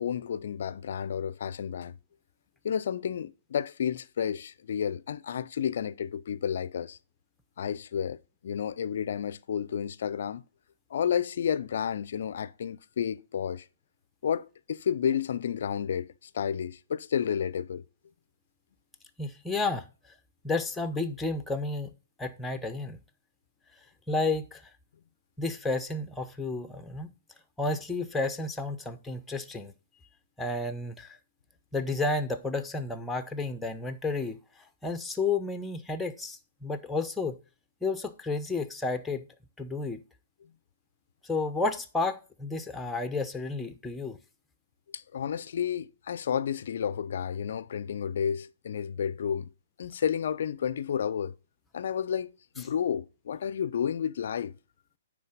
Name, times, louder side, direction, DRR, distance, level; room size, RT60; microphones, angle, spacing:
voice 1, 0.0-2.0 2.6-7.0 7.6-8.2 8.4-10.4 10.9-13.6 14.2-17.8 44.9-49.5 49.8-51.3 51.7-54.5, left 8 dB, 60° left, 0.3 m, -31 dB
voice 2, 19.2-19.9 20.4-21.9 22.2-23.0 24.1-24.6 25.4-27.1 27.6-29.7 30.4-31.2 31.7-34.4 34.8-37.4 37.8-39.2 39.6-40.0 41.2-44.2, left 3 dB, 5° left, 0.6 m, -31 dB
9.5 x 3.2 x 5.2 m
figure-of-eight pair, 120°, 0 cm